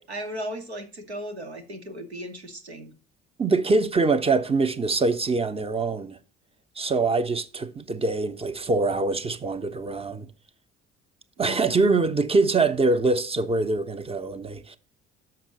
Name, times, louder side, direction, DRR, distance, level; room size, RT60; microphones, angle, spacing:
voice 1, 0.0-2.9 11.4-11.9, equal, 90° right, 0.8 m, -36 dB
voice 2, 3.4-6.2 6.8-10.3 11.4-14.8, right 3 dB, 20° right, 0.6 m, -24 dB
6.7 x 5.9 x 5.1 m
figure-of-eight pair, 50°, 31 cm